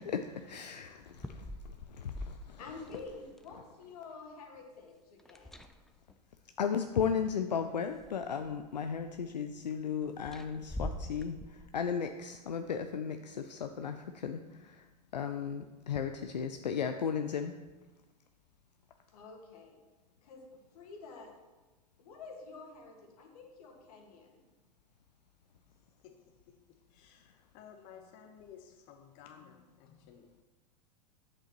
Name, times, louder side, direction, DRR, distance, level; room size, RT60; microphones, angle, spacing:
voice 1, 0.0-1.5 1.9-3.2 3.5-3.6 6.6-14.9 15.1-17.5, left 7 dB, 80° left, 7 dB, 0.5 m, -35 dB
sound 1, 1.0-3.5 5.2-6.1 7.3-7.4 7.8-8.7 10.2-11.9, left 1 dB, ahead, 0.4 m, -44 dB
voice 2, 2.6-5.7 19.1-19.8 20.2-20.4 20.7-21.3 22.0-24.5, left 4 dB, 60° left, 1 dB, 1.7 m, -49 dB
voice 3, 26.0-30.3, left 8 dB, 45° left, 4 dB, 0.9 m, -55 dB
8.5 x 7.5 x 3.0 m, 1.2 s
figure-of-eight pair, 95°, 21 cm